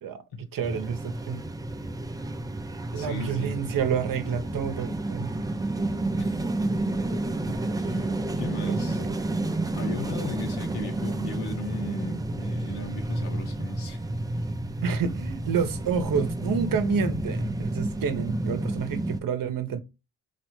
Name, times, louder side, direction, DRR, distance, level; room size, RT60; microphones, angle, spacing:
voice 1, 0.5-1.0 1.3-1.4 2.9-5.3 8.7-9.0 14.8-19.8, right 7 dB, 50° right, 0.8 m, -29 dB
sound 1, 0.6-19.2, right 2 dB, 10° right, 0.3 m, -30 dB
voice 2, 2.9-3.6 6.2-6.4 7.5-9.0 9.7-14.1, left 2 dB, 65° left, 1.1 m, -37 dB
4.3 x 2.0 x 3.1 m
supercardioid pair, 65°, 42 cm